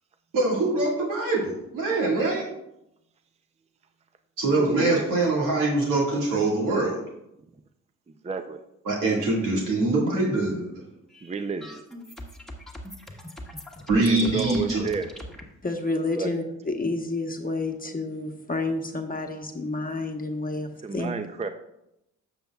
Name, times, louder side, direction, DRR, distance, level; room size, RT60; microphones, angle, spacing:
voice 1, 0.3-2.5 4.4-7.0 8.8-10.8 13.9-14.8, right 2 dB, 75° right, -3 dB, 2.0 m, -24 dB
voice 2, 4.5-5.1 8.2-8.6 11.2-11.8 13.9-15.1 16.2-16.3 20.8-21.5, right 4 dB, 20° right, 8 dB, 0.5 m, -30 dB
sound 1, 11.1-15.4, left 1 dB, ahead, 1.3 m, -41 dB
voice 3, 15.6-21.2, left 2 dB, 25° left, 4 dB, 1.0 m, -30 dB
10.0 x 6.9 x 2.3 m, 0.85 s
cardioid pair, 65°, 33 cm